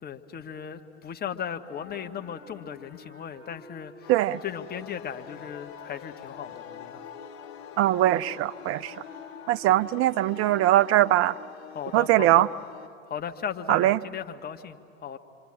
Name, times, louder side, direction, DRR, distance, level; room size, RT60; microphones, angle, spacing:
voice 1, 0.0-4.1 4.4-7.0 9.7-9.8 11.7-12.4 13.1-15.2, left 8 dB, 25° left, 6 dB, 1.6 m, -37 dB
sound 1, 1.6-11.1, left 5 dB, 45° left, 7.6 m, -50 dB
sound 2, 4.0-12.9, left 9 dB, 65° left, 1.1 m, -45 dB
voice 2, 4.1-4.4 7.8-8.9 9.5-11.4 11.9-12.5 13.7-14.0, right 14 dB, 40° right, 14 dB, 0.7 m, -21 dB
26.5 x 25.0 x 8.9 m, 2.3 s
hypercardioid pair, 85°, 35 cm